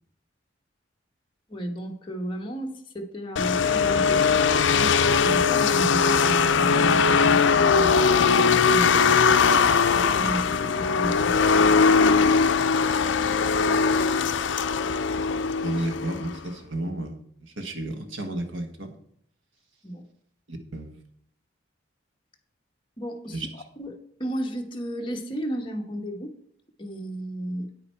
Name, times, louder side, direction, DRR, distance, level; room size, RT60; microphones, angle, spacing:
voice 1, 1.5-8.0 8.4-9.5 9.9-11.5 19.8-20.0 23.0-23.5 23.8-26.3 26.8-27.7, right 1 dB, 25° left, 2 dB, 1.2 m, -33 dB
sound 1, 3.4-16.4, left 5 dB, 70° left, 0.5 m, -20 dB
voice 2, 15.6-18.9 20.5-21.0 23.3-23.5, right 2 dB, 90° right, 5 dB, 1.5 m, -32 dB
9.2 x 9.1 x 4.4 m, 0.68 s
head